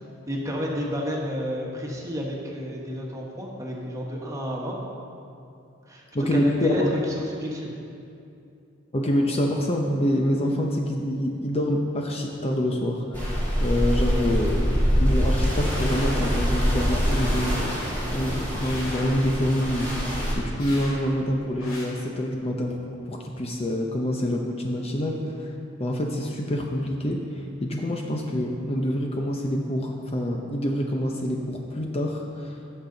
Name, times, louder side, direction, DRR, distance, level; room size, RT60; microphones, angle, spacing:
voice 1, 0.3-4.8 5.9-6.0 6.3-7.7, equal, 15° right, -2 dB, 1.4 m, -30 dB
voice 2, 6.1-6.9 8.9-17.7 18.1-22.8 23.1-25.5 25.8-32.6, equal, 30° left, 1 dB, 0.7 m, -26 dB
sound 1, 13.1-20.3, equal, 10° left, 2.4 m, -24 dB
sound 2, 15.6-16.7 17.1-18.1 18.6-19.2 19.6-20.1 20.6-21.0 21.6-21.8, left 1 dB, 90° left, 2.6 m, -40 dB
15.0 x 6.5 x 3.9 m, 2.6 s
head